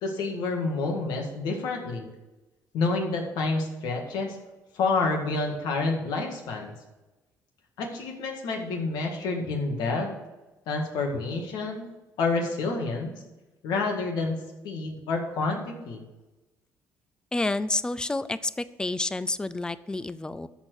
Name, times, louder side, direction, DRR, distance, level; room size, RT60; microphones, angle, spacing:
voice 1, 0.0-2.1 2.7-4.4 4.7-6.7 7.8-10.1 10.7-11.9 12.2-13.2 13.6-14.4 14.6-16.0, left 3 dB, 85° left, 2 dB, 1.9 m, -28 dB
voice 2, 17.3-20.5, left 2 dB, 10° left, 14 dB, 0.4 m, -29 dB
13.0 x 4.4 x 6.3 m, 1.1 s
cardioid pair, 95°, 7 cm